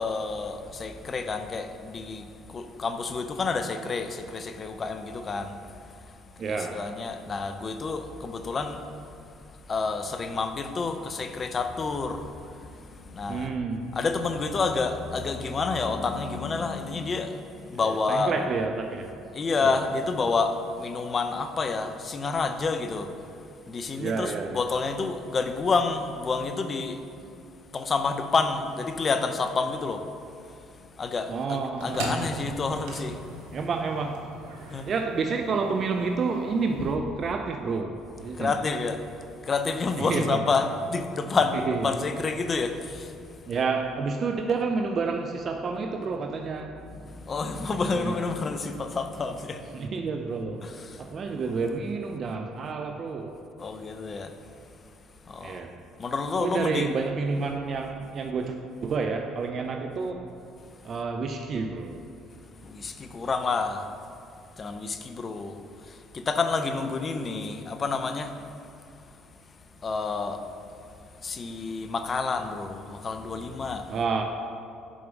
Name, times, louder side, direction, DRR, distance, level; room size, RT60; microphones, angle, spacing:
voice 1, 0.0-5.6 6.5-8.8 9.7-13.5 13.9-18.3 19.3-23.1 23.7-27.0 27.7-30.0 31.0-33.2 34.7-34.9 38.4-39.0 39.4-43.1 46.9-49.6 50.6-51.0 53.6-54.3 55.3-55.6 56.0-56.9 62.6-63.9 64.6-65.6 65.9-68.3 69.8-70.4 71.2-74.0, left 4 dB, 40° left, 8 dB, 0.7 m, -29 dB
voice 2, 6.4-6.8 13.3-13.9 17.7-19.1 19.6-19.8 24.0-24.6 31.3-32.3 33.5-34.3 34.9-38.6 40.0-40.4 41.7-41.9 43.5-46.8 47.9-48.1 49.7-50.7 51.0-53.4 55.4-55.8 56.4-60.3 60.8-62.1 73.9-74.2, right 4 dB, 50° right, 4 dB, 0.5 m, -29 dB
sound 1, 31.5-37.0, right 2 dB, 80° right, 0.9 m, -40 dB
6.3 x 5.2 x 5.9 m, 2.5 s
hypercardioid pair, 65°, 0 cm